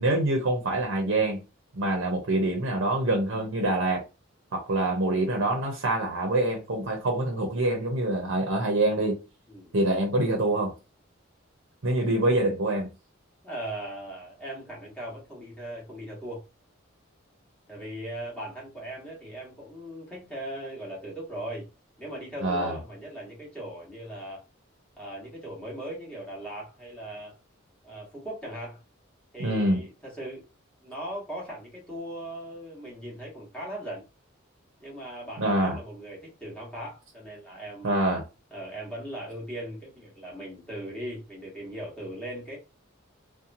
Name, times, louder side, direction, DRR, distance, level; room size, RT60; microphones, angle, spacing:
voice 1, 0.0-1.4 1.7-4.0 4.5-9.2 9.7-10.7 11.8-12.9 22.4-22.8 29.4-29.8 35.4-35.8 37.8-38.2, right 2 dB, 70° right, 0.6 m, -25 dB
voice 2, 13.4-16.4 17.7-21.7 22.0-24.4 25.0-27.4 27.8-28.8 29.3-30.4 30.8-34.0 34.8-38.1 38.5-42.6, right 1 dB, 5° left, 1.1 m, -39 dB
2.8 x 2.1 x 2.5 m
head